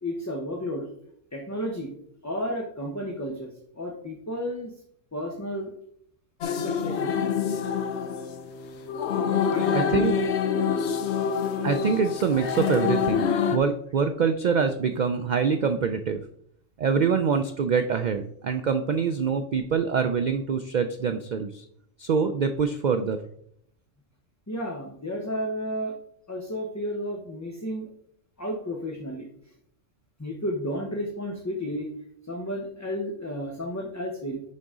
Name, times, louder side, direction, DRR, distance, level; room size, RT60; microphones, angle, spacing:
voice 1, 0.0-0.9 1.3-1.9 2.2-4.7 5.1-5.7 6.5-7.3 9.3-10.0 24.5-26.0 26.3-27.9 28.4-29.3 30.2-31.9 32.2-34.4, equal, 15° left, 0 dB, 0.7 m, -32 dB
sound 1, 6.4-13.6, left 7 dB, 65° left, 0.9 m, -26 dB
voice 2, 9.7-10.1 11.6-16.2 16.8-21.6 22.0-23.2, right 6 dB, 80° right, 7 dB, 0.4 m, -25 dB
10.5 x 3.9 x 3.7 m, 0.70 s
omnidirectional pair, 1.3 m